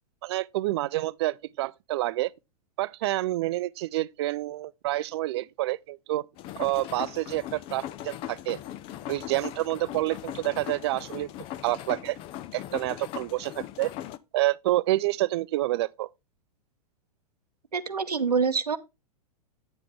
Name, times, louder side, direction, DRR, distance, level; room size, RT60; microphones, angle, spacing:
voice 1, 0.2-2.3 2.8-6.2 6.6-8.6 9.1-11.3 11.6-12.2 12.5-13.9 14.3-16.1, right 17 dB, 40° right, 0.4 m, -28 dB
sound 1, 6.4-14.2, left 13 dB, 25° left, 0.5 m, -39 dB
voice 2, 17.7-18.8, right 5 dB, 80° right, 0.7 m, -26 dB
9.0 x 7.5 x 3.4 m
figure-of-eight pair, 100°, 20 cm